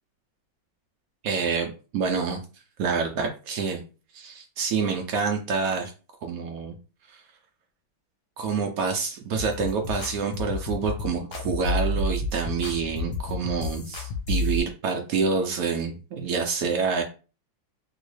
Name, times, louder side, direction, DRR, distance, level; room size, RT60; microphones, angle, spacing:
voice 1, 1.2-2.4 2.8-3.8 4.1-5.9 6.2-6.7 7.1-7.2 8.4-17.0, right 5 dB, 85° right, 3 dB, 0.7 m, -27 dB
sound 1, 9.4-14.6, left 2 dB, 60° left, 1.0 m, -30 dB
3.0 x 2.7 x 3.1 m, 0.35 s
omnidirectional pair, 2.1 m